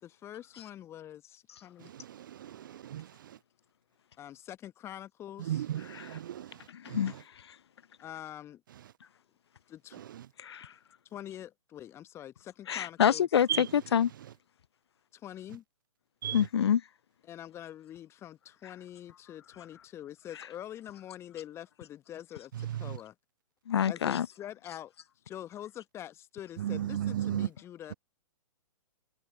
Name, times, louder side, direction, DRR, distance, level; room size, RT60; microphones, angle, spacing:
voice 1, 0.0-1.9 4.2-5.7 8.0-8.6 9.7-10.0 11.1-13.3 15.1-15.6 17.2-23.1 23.9-24.9 25.3-27.9, left 11 dB, 15° left, 1.2 m, -45 dB
voice 2, 2.5-3.1 5.5-6.6 6.9-7.0 13.5-13.6 16.2-16.4 26.6-27.5, right 11 dB, 35° right, 0.4 m, -33 dB
voice 3, 6.7-7.1 10.4-10.7 12.7-14.1 16.3-16.8 23.7-24.3, left 9 dB, 50° left, 0.8 m, -27 dB
figure-of-eight pair, 120°, 18 cm